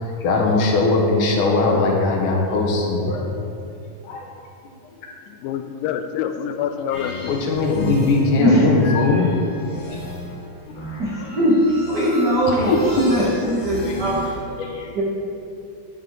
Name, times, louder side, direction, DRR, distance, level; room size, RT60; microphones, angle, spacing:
voice 1, 0.0-3.3 4.0-4.2 7.3-9.3 12.7-13.1 13.8-14.2 14.6-15.0, left 3 dB, 70° left, -1 dB, 2.5 m, -20 dB
voice 2, 5.3-7.4, left 9 dB, 85° left, 8 dB, 2.2 m, -27 dB
sound 1, 6.9-14.4, equal, 35° left, 2.8 m, -34 dB
voice 3, 8.4-8.7 11.0-11.6 11.9-14.2 14.9-15.0, equal, 70° right, -6 dB, 0.9 m, -20 dB
10.5 x 7.5 x 3.9 m, 2.6 s
omnidirectional pair, 3.9 m